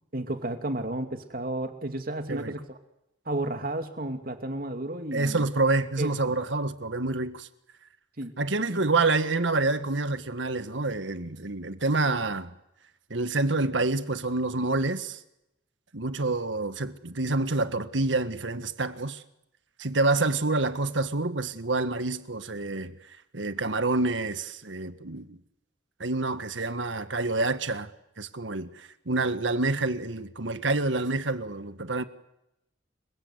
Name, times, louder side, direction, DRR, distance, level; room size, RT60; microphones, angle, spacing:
voice 1, 0.1-2.7 3.2-5.5 6.0-6.3 8.2-8.3 8.7-8.8, right 1 dB, 50° right, 2.8 m, -32 dB
voice 2, 5.1-7.5 8.4-12.5 13.1-15.2 15.9-19.2 19.8-22.9 23.3-25.4 26.0-27.9 28.2-32.0, right 3 dB, 90° right, 1.8 m, -27 dB
30.0 x 23.0 x 8.2 m
head